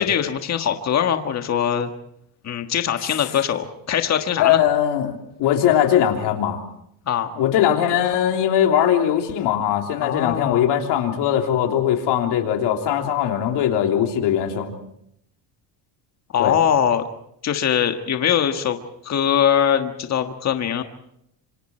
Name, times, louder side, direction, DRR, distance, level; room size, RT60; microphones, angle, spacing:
voice 1, 0.0-1.9 2.4-4.6 7.1-7.3 10.0-10.7 16.3-17.1 17.4-18.8 19.0-20.8, left 9 dB, 35° left, 6 dB, 1.6 m, -22 dB
voice 2, 4.4-6.6 7.4-14.7 16.4-16.6, left 10 dB, 65° left, 3 dB, 3.4 m, -20 dB
26.5 x 26.0 x 4.5 m, 0.73 s
cardioid pair, 125°, 44 cm